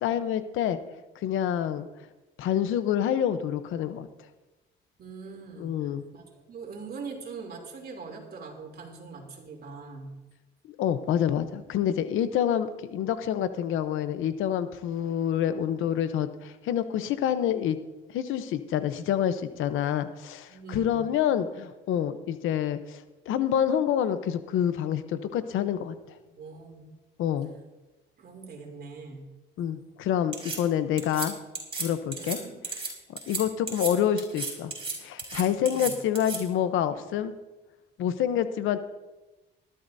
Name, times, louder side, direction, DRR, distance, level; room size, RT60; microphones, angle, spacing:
voice 1, 0.0-0.8 1.2-1.9 2.4-4.1 5.6-6.0 10.7-17.8 18.1-25.9 27.2-27.5 29.6-31.4 31.8-32.4 33.3-34.7 35.0-37.3 38.0-38.8, left 9 dB, 85° left, 11 dB, 0.9 m, -27 dB
voice 2, 5.0-10.1 20.5-21.0 26.4-26.9 28.2-29.3 32.1-32.5 35.6-35.9, right 4 dB, 50° right, 2 dB, 3.1 m, -42 dB
sound 1, 30.3-30.6 31.0-31.3 31.5-31.9 32.1-32.4 32.6-32.9 33.2-33.4 33.7-33.9 34.2-34.9 35.2-36.4, right 4 dB, 30° right, 4.9 m, -33 dB
19.5 x 12.5 x 2.7 m, 1.1 s
cardioid pair, 90°, 20 cm